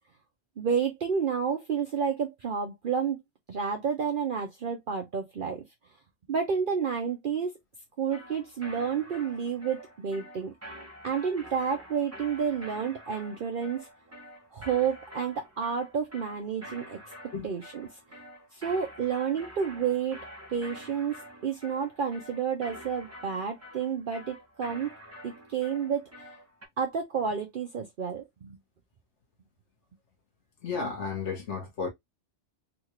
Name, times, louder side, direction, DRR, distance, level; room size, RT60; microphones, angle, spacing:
voice 1, 0.6-3.2 3.5-5.6 6.3-7.5 8.0-10.5 11.0-13.9 14.5-17.0 17.4-17.9 18.5-20.2 20.5-24.9 25.2-26.1 26.8-28.6, right 6 dB, 55° right, 0.8 m, -30 dB
sound 1, 8.1-26.7, equal, 15° right, 0.8 m, -47 dB
voice 2, 30.6-31.9, left 5 dB, 80° left, 1.3 m, -33 dB
3.8 x 2.4 x 2.9 m
omnidirectional pair, 1.2 m